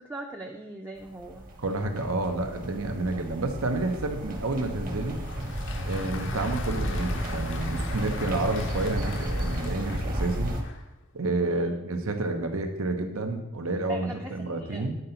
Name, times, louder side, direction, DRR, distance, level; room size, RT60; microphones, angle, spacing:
voice 1, 0.0-1.4 11.4-11.7 13.9-15.0, right 2 dB, 10° right, 0 dB, 0.5 m, -41 dB
sound 1, 1.0-10.6, equal, 40° right, 1.1 m, -32 dB
voice 2, 1.6-5.2 5.8-10.5 11.1-15.0, right 2 dB, 85° right, 5 dB, 1.0 m, -30 dB
Applause, 4.8-10.9, left 5 dB, 60° left, 0.7 m, -42 dB
9.4 x 3.9 x 5.7 m, 0.96 s
head